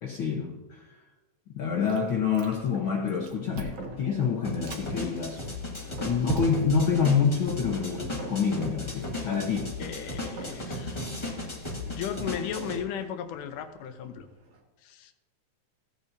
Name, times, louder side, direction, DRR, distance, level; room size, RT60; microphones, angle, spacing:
voice 1, 0.0-0.9 1.5-5.4 6.0-9.7, left 6 dB, 70° left, 1 dB, 1.2 m, -27 dB
Chewing mastication, 1.9-2.8 3.1-3.9 4.4-4.9 5.4-6.9, right 3 dB, 85° right, 2.8 m, -37 dB
sound 1, 2.4-14.6, right 2 dB, 70° right, 3.1 m, -48 dB
sound 2, 4.4-12.8, left 1 dB, 25° left, 0.6 m, -36 dB
voice 2, 9.8-11.1 11.8-14.3 14.8-15.1, left 8 dB, 90° left, 8 dB, 2.4 m, -36 dB
16.0 x 8.7 x 2.7 m, 1.2 s
omnidirectional pair, 3.5 m